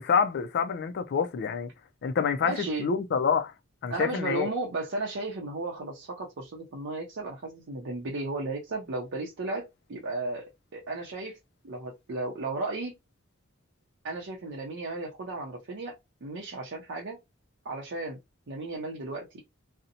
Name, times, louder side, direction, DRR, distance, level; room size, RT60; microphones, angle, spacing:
voice 1, 0.0-1.7 2.0-3.5 3.8-4.5, left 6 dB, 55° left, 0.4 m, -27 dB
voice 2, 2.4-2.8 3.9-11.4 11.6-12.9 14.0-17.2 17.6-18.2 18.5-19.3, right 2 dB, 65° right, 0.5 m, -34 dB
2.6 x 2.0 x 2.7 m
head